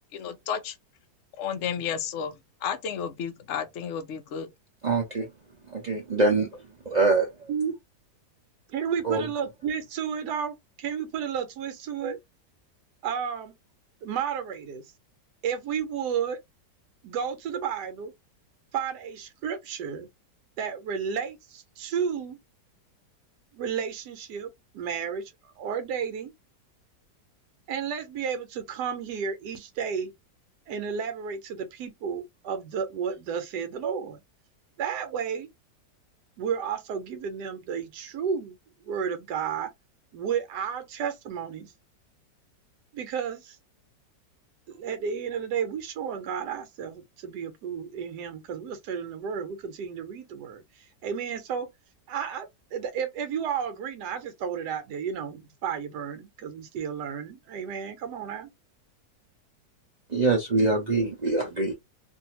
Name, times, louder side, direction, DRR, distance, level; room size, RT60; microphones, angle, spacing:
voice 1, 0.1-0.7 1.4-2.3 2.6-4.5, left 7 dB, 70° left, 0.6 m, -32 dB
voice 2, 4.8-5.3 5.7-6.5 6.9-7.3 9.0-9.2 60.1-61.7, right 3 dB, 55° right, 0.4 m, -24 dB
voice 3, 8.7-12.2 13.0-13.5 14.0-14.9 15.4-16.4 17.0-18.1 18.7-20.1 20.6-22.4 23.5-26.3 27.7-30.1 30.7-34.2 34.8-35.5 36.4-39.7 40.1-41.7 42.9-43.6 44.7-51.7 52.1-58.5, right 7 dB, 75° right, 1.3 m, -32 dB
2.7 x 2.7 x 2.8 m
omnidirectional pair, 1.9 m